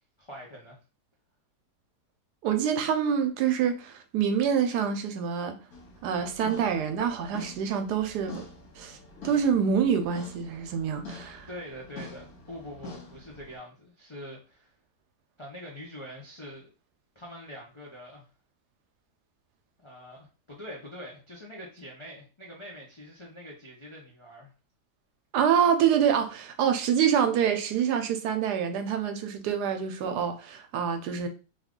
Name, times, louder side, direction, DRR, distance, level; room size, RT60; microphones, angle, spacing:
voice 1, 0.2-0.8 11.5-14.7 15.4-16.7 17.1-18.3 19.8-24.5, equal, 50° left, 0.3 m, -44 dB
voice 2, 2.4-5.6 6.0-8.5 8.8-9.0 9.2-11.5 25.3-31.3, right 8 dB, 85° right, 1.2 m, -26 dB
sound 1, 5.7-13.6, left 3 dB, 65° left, 1.4 m, -45 dB
2.9 x 2.4 x 3.6 m
omnidirectional pair, 1.7 m